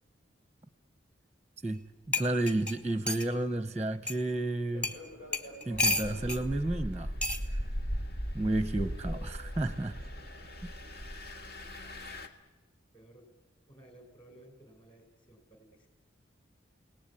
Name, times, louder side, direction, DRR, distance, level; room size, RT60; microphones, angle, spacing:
sound 1, 1.7-1.8 2.1-3.3 4.1-4.2 4.8-5.0 5.3-6.4 7.2-7.4 8.5-8.8, left 2 dB, 5° left, 1.2 m, -31 dB
voice 1, 2.1-4.9 5.6-7.1 8.3-10.0, right 2 dB, 10° right, 11 dB, 0.8 m, -31 dB
Fixed-wing aircraft airplane, 4.6-11.1, equal, 90° left, 6.0 m, -53 dB
Engine, 5.7-12.3, equal, 55° left, 1.7 m, -38 dB
voice 2, 12.9-13.4 13.7-15.9, right 1 dB, 30° left, 4 dB, 5.5 m, -56 dB
29.5 x 18.5 x 8.6 m, 1.2 s
head